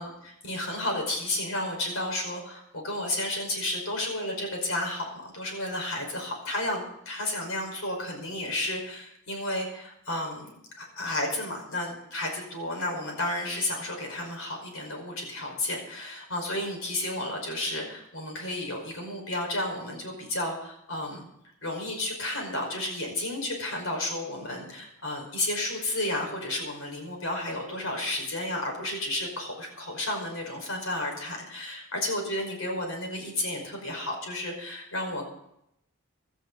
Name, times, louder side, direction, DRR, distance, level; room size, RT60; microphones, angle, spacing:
voice 1, 0.0-10.5 10.8-21.3 21.6-35.2, left 1 dB, 65° left, 2 dB, 5.2 m, -32 dB
16.5 x 13.0 x 4.0 m, 0.77 s
head